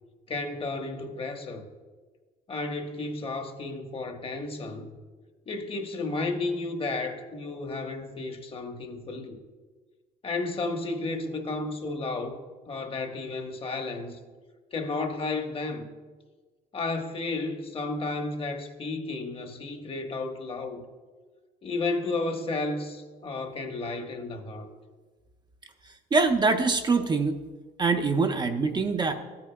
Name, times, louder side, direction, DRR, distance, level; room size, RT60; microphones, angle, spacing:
voice 1, 0.3-1.6 2.5-5.0 5.5-9.4 10.2-12.4 12.6-14.2 14.7-15.9 16.7-20.8 21.6-24.7, left 3 dB, 35° left, 1.0 m, -32 dB
voice 2, 25.9-27.4 27.8-29.1, right 4 dB, 25° right, 0.5 m, -24 dB
13.0 x 8.4 x 2.2 m
cardioid pair, 110°, 17 cm